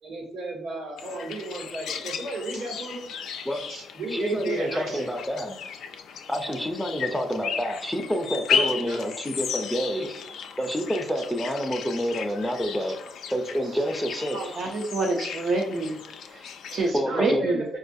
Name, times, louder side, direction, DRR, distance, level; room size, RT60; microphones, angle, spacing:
voice 1, 0.0-3.1 3.7-5.1 7.1-7.2 8.5-9.0 13.6-13.8 14.1-14.2 17.0-17.6, right 2 dB, 80° right, -2 dB, 1.2 m, -34 dB
sound 1, 1.0-16.9, left 7 dB, 75° left, 0.3 m, -35 dB
voice 2, 4.1-5.6 6.3-10.2 10.6-13.0 13.3-14.6 16.9-17.4, equal, 5° left, 4 dB, 0.5 m, -28 dB
voice 3, 14.3-16.0 16.3-17.6, right 2 dB, 65° right, 0 dB, 0.5 m, -27 dB
4.3 x 2.3 x 2.6 m, 0.72 s
cardioid pair, 90°, 0 cm